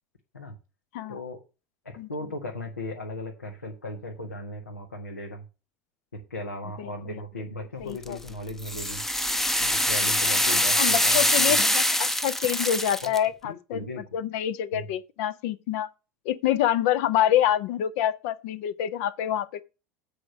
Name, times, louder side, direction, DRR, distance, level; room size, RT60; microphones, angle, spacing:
voice 1, 1.8-5.4 6.1-9.0 9.6-11.2 11.5-11.6 13.0-13.1 13.4-14.0 14.7-14.9, left 1 dB, 90° left, 1.3 m, -37 dB
voice 2, 6.8-7.2 7.8-8.2 10.8-15.9 16.2-19.6, left 11 dB, 60° left, 0.6 m, -27 dB
sound 1, 8.0-13.2, left 1 dB, 5° left, 0.6 m, -24 dB
7.7 x 5.0 x 6.2 m
figure-of-eight pair, 80°, 8 cm